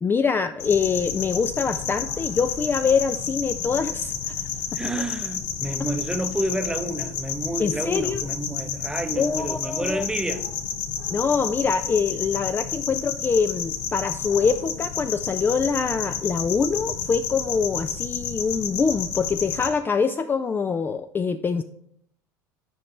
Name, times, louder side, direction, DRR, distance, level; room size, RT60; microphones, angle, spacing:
voice 1, 0.0-4.3 7.6-8.2 9.2-10.0 11.1-21.6, left 5 dB, 20° left, 9 dB, 0.3 m, -24 dB
sound 1, 0.6-19.7, left 7 dB, 70° left, 0.8 m, -31 dB
voice 2, 4.7-10.4, right 1 dB, 10° right, 8 dB, 0.7 m, -29 dB
8.5 x 5.1 x 3.2 m, 0.70 s
hypercardioid pair, 75°, 10 cm